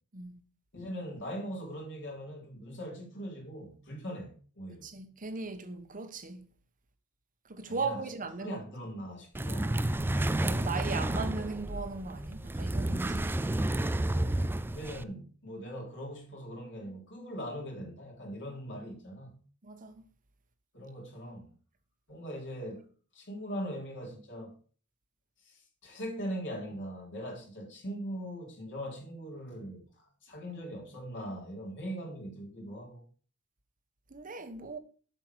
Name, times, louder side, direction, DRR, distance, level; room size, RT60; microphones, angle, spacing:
voice 1, 0.7-4.9 7.7-8.0 8.4-9.8 14.1-19.3 20.7-21.5 22.1-22.8 23.1-24.5 25.4-33.0, equal, 55° left, 3.3 m, -41 dB
voice 2, 4.8-6.5 7.4-8.6 10.4-13.7 19.6-20.1 34.1-34.8, right 4 dB, 40° right, 1.1 m, -38 dB
sound 1, 9.4-15.0, right 1 dB, 10° right, 0.3 m, -31 dB
7.5 x 6.6 x 4.6 m
head